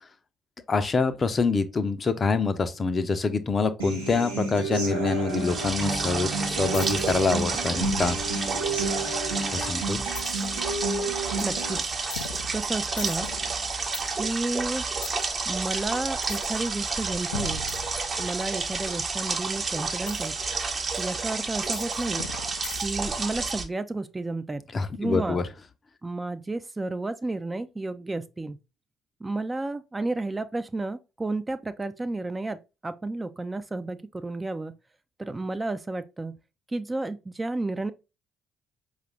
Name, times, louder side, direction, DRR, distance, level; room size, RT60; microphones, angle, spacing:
voice 1, 0.7-8.2 9.5-10.0 24.7-25.4, left 4 dB, 35° left, 0.5 m, -26 dB
Human voice / Acoustic guitar, 3.8-11.8, right 3 dB, 85° right, 0.9 m, -31 dB
sound 1, 5.3-23.6, right 4 dB, 35° right, 0.8 m, -30 dB
sound 2, 6.7-7.2 7.8-9.4 10.1-10.6 11.4-11.6 12.1-14.1 15.0-15.2 16.2-16.6 17.3-18.5 20.1-20.3 20.9-21.0 21.7-23.1, left 4 dB, 85° left, 0.4 m, -38 dB
voice 2, 11.4-12.0 12.5-13.3 14.2-14.8 15.5-17.6 18.2-20.4 21.0-22.3 22.8-24.6 25.0-25.4 26.0-28.6 29.2-34.8 35.2-36.4 36.7-37.9, right 2 dB, 20° right, 0.4 m, -31 dB
4.8 x 2.4 x 3.2 m
figure-of-eight pair, 50°, 0 cm